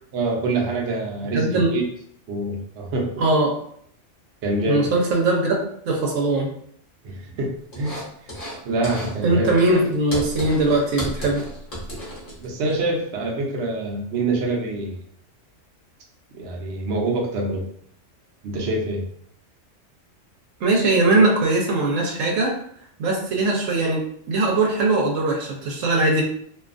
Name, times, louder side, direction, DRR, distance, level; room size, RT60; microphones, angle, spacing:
voice 1, 0.1-1.8 2.3-3.1 4.4-4.9 7.0-8.0 8.6-9.5 11.9-12.0 12.4-15.0 16.3-17.7 18.4-19.0, right 2 dB, 65° right, -1 dB, 0.9 m, -25 dB
voice 2, 1.3-1.7 3.2-3.6 4.7-5.6 5.9-6.5 9.2-11.4 20.6-22.6 23.0-26.2, right 2 dB, 90° right, 0 dB, 1.0 m, -20 dB
sound 1, 7.7-8.6 8.8-9.2 9.4-12.7, equal, 35° left, 0.9 m, -33 dB
2.6 x 2.3 x 2.4 m, 0.65 s
omnidirectional pair, 1.3 m